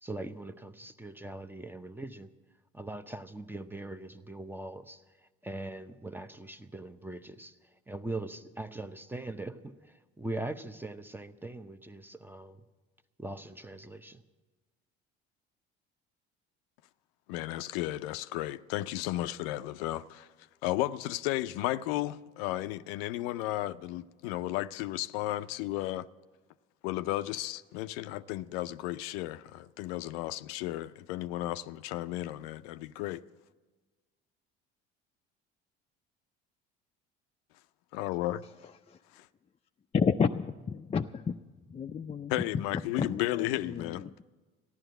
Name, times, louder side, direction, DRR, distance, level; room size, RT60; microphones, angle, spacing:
voice 1, 0.0-2.3 2.7-5.0 5.4-12.6 13.2-14.2, right 2 dB, 5° right, 0.7 m, -41 dB
voice 2, 17.3-20.3 20.6-26.1 26.8-33.2 37.9-38.4 39.1-39.3 42.3-44.0, left 15 dB, 80° left, 0.5 m, -34 dB
voice 3, 39.9-41.4 41.7-42.3 43.0-44.2, left 6 dB, 20° left, 0.4 m, -31 dB
14.0 x 11.0 x 7.9 m
hypercardioid pair, 65°, 29 cm